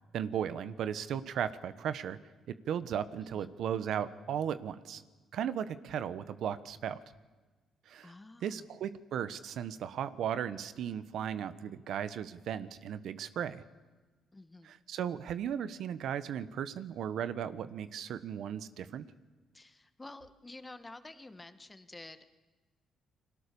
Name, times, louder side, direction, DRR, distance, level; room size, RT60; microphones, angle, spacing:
voice 1, 0.1-2.2 2.5-5.0 5.3-7.0 7.9-8.1 8.4-13.6 14.6-19.1, right 9 dB, 75° right, 14 dB, 1.1 m, -36 dB
voice 2, 8.0-8.7 14.3-14.7 19.5-22.3, left 2 dB, 15° left, 10 dB, 1.8 m, -50 dB
30.0 x 21.5 x 7.0 m, 1.3 s
cardioid pair, 90°, 0 cm